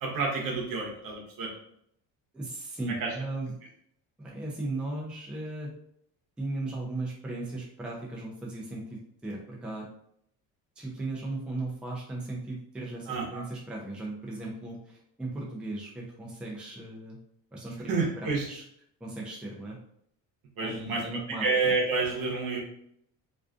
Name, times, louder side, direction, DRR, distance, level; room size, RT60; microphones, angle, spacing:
voice 1, 0.0-1.5 3.0-3.1 13.1-13.4 17.9-18.5 20.6-21.0 21.4-22.6, right 4 dB, 60° right, -1 dB, 0.9 m, -29 dB
voice 2, 2.3-3.5 4.2-5.7 6.4-9.9 10.8-17.2 17.5-18.6 19.0-19.8 20.6-21.5, right 2 dB, 5° right, -3 dB, 0.4 m, -37 dB
2.5 x 2.3 x 2.3 m, 0.70 s
cardioid pair, 120°, 38 cm